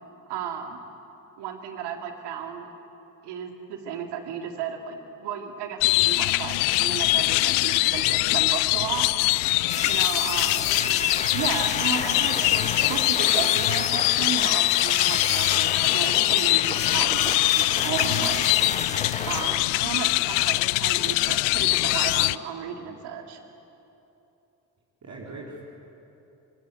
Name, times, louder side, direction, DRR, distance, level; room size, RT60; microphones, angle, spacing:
voice 1, 0.3-0.8 1.4-2.7 3.2-9.1 9.8-11.0 11.3-18.4 19.3-23.4, right 8 dB, 65° right, 4 dB, 2.7 m, -34 dB
sound 1, 5.8-22.4, left 22 dB, 65° left, 0.6 m, -23 dB
sound 2, 9.7-19.5, left 3 dB, 15° left, 1.6 m, -32 dB
voice 2, 10.5-11.0 25.0-25.6, right 3 dB, 40° right, -4 dB, 4.1 m, -41 dB
24.5 x 23.0 x 8.3 m, 2.9 s
figure-of-eight pair, 45°, 44 cm